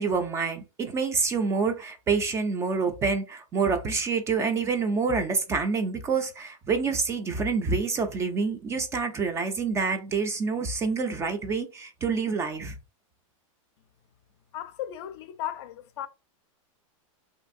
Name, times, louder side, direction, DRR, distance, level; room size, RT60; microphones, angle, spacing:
voice 1, 0.0-12.8, right 4 dB, 15° right, 0.3 m, -27 dB
voice 2, 14.5-16.1, left 11 dB, 50° left, 0.4 m, -36 dB
2.9 x 2.6 x 2.5 m
hypercardioid pair, 140°, 17 cm